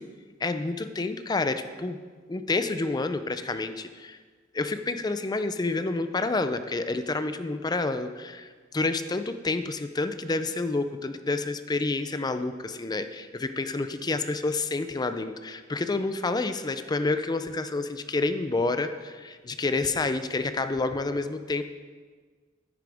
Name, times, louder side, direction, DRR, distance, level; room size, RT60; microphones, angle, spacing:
voice 1, 0.4-2.0 2.3-4.2 4.5-21.6, left 3 dB, 20° left, 9 dB, 0.4 m, -29 dB
10.0 x 9.6 x 3.5 m, 1.5 s
head